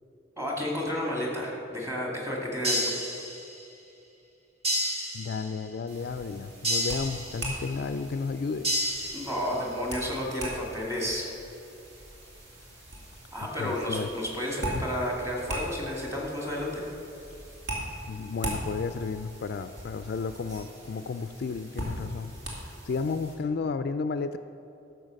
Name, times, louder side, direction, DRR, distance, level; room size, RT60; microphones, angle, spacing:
voice 1, 0.4-2.8 9.1-11.2 13.3-16.8, left 1 dB, 15° right, -2 dB, 2.1 m, -31 dB
sound 1, 2.6-3.7 4.6-5.7 6.6-7.7 8.6-9.7, equal, 30° right, 1.5 m, -31 dB
voice 2, 5.1-8.7 13.6-14.1 14.7-14.8 18.1-22.3 22.6-24.4, left 4 dB, 50° left, 10 dB, 0.3 m, -32 dB
sound 2, 5.9-23.3, right 1 dB, 55° right, 2.5 m, -40 dB
12.0 x 6.9 x 6.4 m, 2.7 s
head